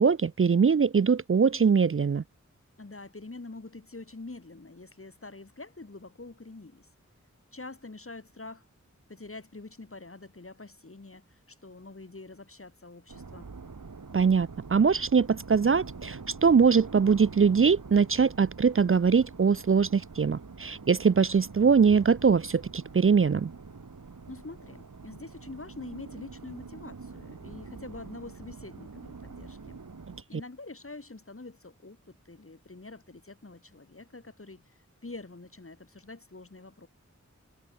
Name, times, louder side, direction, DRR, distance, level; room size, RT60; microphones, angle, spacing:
voice 1, 0.0-2.2 14.1-23.5, right 5 dB, 45° right, 0.5 m, -22 dB
voice 2, 2.8-6.9 7.5-8.7 9.1-13.5 24.3-29.8 30.3-36.9, left 3 dB, 45° left, 3.1 m, -45 dB
sound 1, 13.1-30.2, right 4 dB, 90° right, 2.9 m, -45 dB
wide cardioid pair, 50°, 30 cm